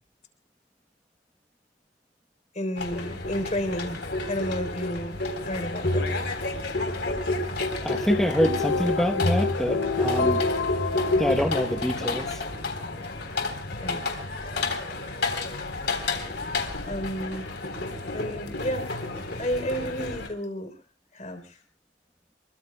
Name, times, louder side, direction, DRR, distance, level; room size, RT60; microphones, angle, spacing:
voice 1, 2.5-6.1 11.4-11.5 13.8-14.1 16.7-17.5 18.1-18.9 19.4-20.7 21.1-21.6, equal, 40° left, 7 dB, 3.6 m, -32 dB
sound 1, 2.8-20.3, left 2 dB, 65° left, 3.8 m, -29 dB
voice 2, 7.8-10.4 11.2-12.4, equal, 5° left, 3 dB, 1.0 m, -26 dB
sound 2, 8.2-12.5, left 4 dB, 90° left, 0.8 m, -30 dB
27.0 x 23.5 x 2.3 m, 0.36 s
head